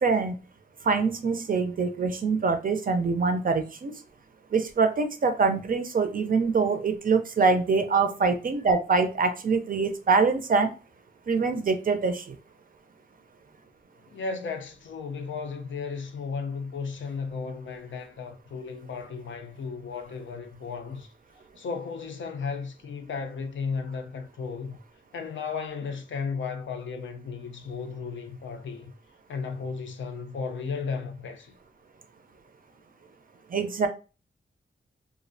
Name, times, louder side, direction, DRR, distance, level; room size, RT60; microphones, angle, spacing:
voice 1, 0.0-0.4 0.8-3.9 4.5-10.7 11.3-12.4 33.5-33.9, right 4 dB, 50° right, 0.4 m, -24 dB
voice 2, 14.1-21.1 21.6-24.8 25.1-28.9 29.3-31.5, left 5 dB, 90° left, 0.4 m, -34 dB
2.4 x 2.0 x 2.5 m
wide cardioid pair, 100°, 19 cm